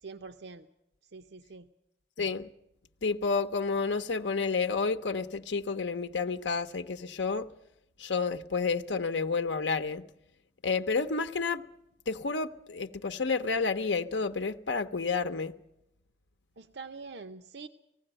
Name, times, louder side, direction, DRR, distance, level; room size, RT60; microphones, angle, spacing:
voice 1, 0.0-0.7 1.1-1.7 16.6-17.7, right 4 dB, 70° right, 0.7 m, -44 dB
voice 2, 2.2-2.5 3.0-7.5 8.0-10.0 10.6-11.6 12.1-15.5, left 4 dB, 85° left, 0.8 m, -30 dB
19.0 x 15.5 x 8.9 m
head